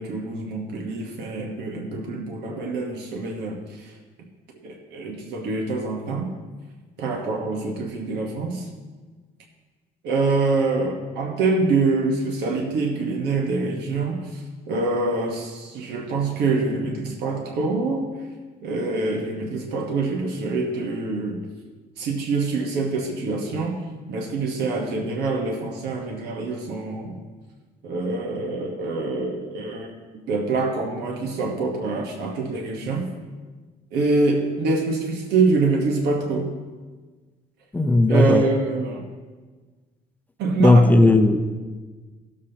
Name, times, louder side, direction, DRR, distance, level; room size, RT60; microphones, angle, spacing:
voice 1, 0.0-3.9 4.6-6.3 7.0-8.7 10.0-18.1 18.6-21.4 22.0-23.8 24.1-27.2 27.8-33.1 33.9-36.5 38.1-39.1 40.4-40.8, right 3 dB, 80° right, 1 dB, 1.3 m, -25 dB
voice 2, 37.7-38.4 40.6-41.4, left 2 dB, 10° left, 6 dB, 0.6 m, -15 dB
17.0 x 7.3 x 2.9 m, 1.4 s
cardioid pair, 110°, 17 cm